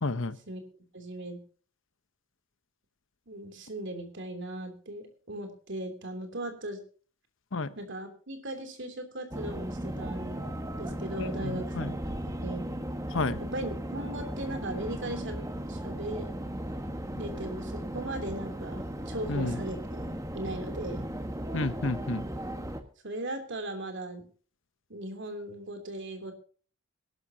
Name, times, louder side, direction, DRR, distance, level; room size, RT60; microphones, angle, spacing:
voice 1, 0.0-0.4 7.5-7.7 11.2-11.9 13.1-13.4 19.3-19.6 21.5-22.2, left 3 dB, 60° left, 0.9 m, -31 dB
voice 2, 0.9-1.4 3.3-6.8 7.8-12.1 12.4-12.7 13.4-15.4 15.7-16.3 17.1-19.8 20.3-21.1 23.0-24.3 24.9-26.3, right 1 dB, 55° right, 3.1 m, -38 dB
sound 1, 9.3-22.8, right 1 dB, 15° right, 1.3 m, -36 dB
22.5 x 12.0 x 2.8 m
head